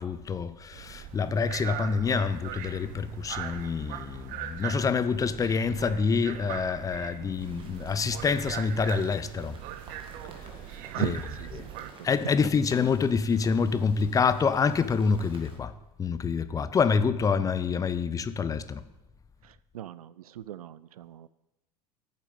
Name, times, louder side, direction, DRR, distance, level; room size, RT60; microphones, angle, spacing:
voice 1, 0.0-9.6 11.0-11.1 11.6-11.7 12.0-15.7 16.0-18.8, left 5 dB, 15° left, 0.5 m, -27 dB
sound 1, 0.7-11.9, right 11 dB, 45° right, 0.8 m, -40 dB
sound 2, 7.4-15.6, right 3 dB, 25° right, 2.0 m, -52 dB
voice 2, 10.9-12.7 19.4-21.3, right 12 dB, 65° right, 0.4 m, -38 dB
9.2 x 7.3 x 7.4 m
figure-of-eight pair, 80°, 20 cm